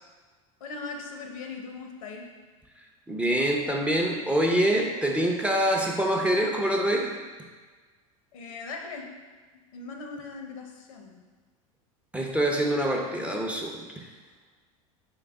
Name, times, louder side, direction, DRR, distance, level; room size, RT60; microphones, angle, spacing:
voice 1, 0.6-2.3 8.3-9.1 9.7-11.3, left 4 dB, 75° left, 2 dB, 0.8 m, -39 dB
voice 2, 3.1-7.2 12.1-13.8, right 1 dB, 5° right, 0 dB, 0.5 m, -25 dB
3.8 x 3.3 x 3.5 m, 1.4 s
hypercardioid pair, 90°, 18 cm